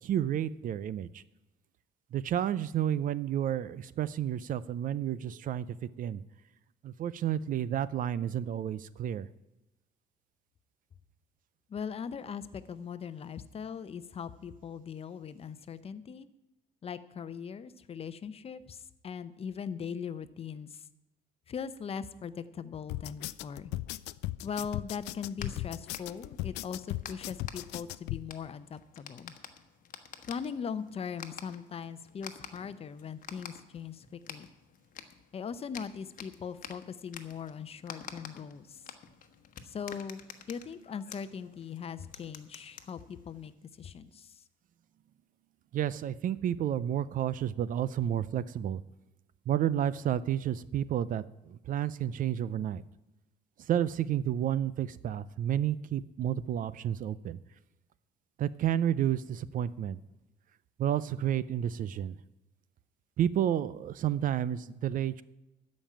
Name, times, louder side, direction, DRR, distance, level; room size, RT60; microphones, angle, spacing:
voice 1, 0.0-1.2 2.1-5.7 6.0-6.2 6.8-9.3 45.7-48.8 49.5-52.8 53.6-57.4 58.4-60.0 60.8-62.2 63.2-65.2, right 10 dB, 55° right, 17 dB, 0.5 m, -31 dB
voice 2, 11.7-16.3 16.8-20.9 21.5-23.7 24.4-29.3 30.3-34.5 35.3-38.8 39.6-40.2 40.5-43.5 43.8-44.4, left 6 dB, 35° left, 14 dB, 0.7 m, -40 dB
sound 1, 22.9-28.2, left 17 dB, 85° left, 0.4 m, -37 dB
sound 2, 25.1-43.5, left 7 dB, 55° left, 1.1 m, -50 dB
13.0 x 5.4 x 8.6 m, 0.97 s
cardioid pair, 110°, 17 cm